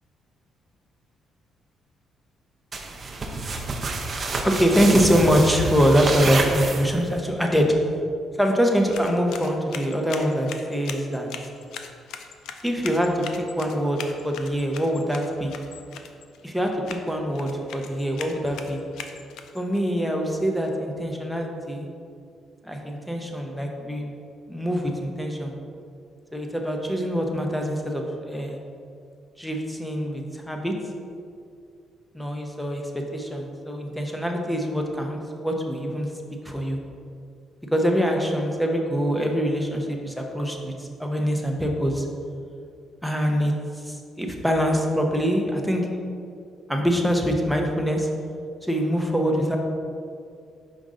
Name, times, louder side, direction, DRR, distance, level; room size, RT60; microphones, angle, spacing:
sound 1, 2.7-7.2, right 3 dB, 40° right, 0.7 m, -28 dB
voice 1, 4.4-7.7 8.4-11.3 12.6-15.5 16.4-18.8 19.5-21.9 22.6-24.2 24.5-25.5 26.3-28.6 29.4-30.7 32.1-36.1 36.4-36.8 37.7-42.1 43.0-46.0 46.7-48.1 48.6-49.6, equal, 5° left, 1 dB, 0.8 m, -24 dB
sound 2, 8.6-19.8, left 7 dB, 85° left, 0.4 m, -41 dB
5.2 x 5.0 x 3.7 m, 2.4 s
cardioid pair, 90°, 0 cm